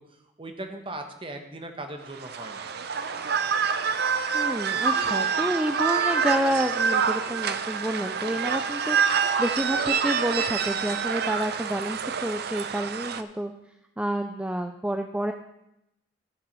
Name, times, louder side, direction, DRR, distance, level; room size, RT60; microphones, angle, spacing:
voice 1, 0.0-2.7, right 2 dB, 30° right, 5 dB, 1.1 m, -39 dB
sound 1, 2.1-13.2, right 6 dB, 60° right, 0.6 m, -27 dB
voice 2, 4.3-9.1 9.4-13.5 14.0-15.3, right 1 dB, 5° right, 6 dB, 0.3 m, -29 dB
13.0 x 6.3 x 5.4 m, 0.86 s
head